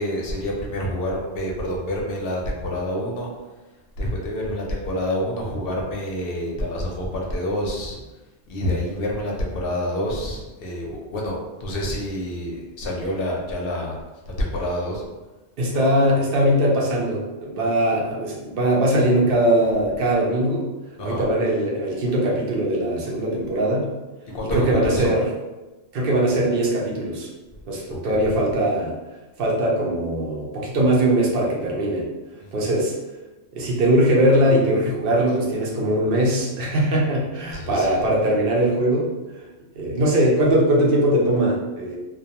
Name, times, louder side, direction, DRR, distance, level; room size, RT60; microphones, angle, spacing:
voice 1, 0.0-3.3 4.0-8.0 8.5-14.0 14.3-15.0 21.0-21.3 24.3-25.1 27.9-28.3 32.4-32.6 37.5-38.0, equal, 60° left, -2 dB, 0.7 m, -27 dB
voice 2, 15.6-20.7 21.0-23.9 24.5-25.2 25.9-27.3 27.7-28.9 29.4-32.1 32.5-32.9 33.5-39.1 39.8-42.0, right 1 dB, 60° right, -3 dB, 0.6 m, -21 dB
2.2 x 2.2 x 2.8 m, 1.1 s
omnidirectional pair, 1.3 m